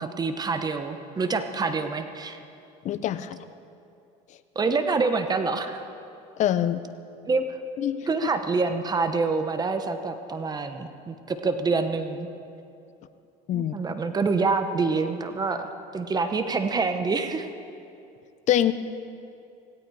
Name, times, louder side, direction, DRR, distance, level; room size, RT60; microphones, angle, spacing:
voice 1, 0.0-2.4 4.5-5.8 7.2-7.6 8.1-12.3 13.5-17.5, right 4 dB, 25° right, 8 dB, 1.1 m, -26 dB
voice 2, 2.8-3.4 6.4-6.8 7.8-8.0 13.5-13.7 18.5-18.7, left 11 dB, 45° left, 13 dB, 0.8 m, -24 dB
17.0 x 17.0 x 4.8 m, 2.6 s
supercardioid pair, 105°, 16 cm